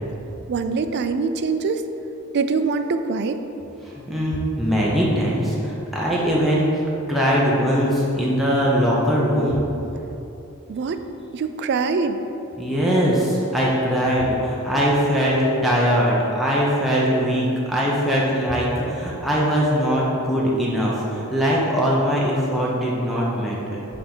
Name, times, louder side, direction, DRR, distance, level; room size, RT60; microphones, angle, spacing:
voice 1, 0.5-1.9 2.3-3.4 10.7-11.1 11.3-12.2, right 4 dB, 50° right, 9 dB, 0.3 m, -23 dB
voice 2, 3.8-9.6 12.6-23.8, equal, ahead, -6 dB, 0.6 m, -21 dB
5.5 x 3.4 x 5.3 m, 3.0 s
head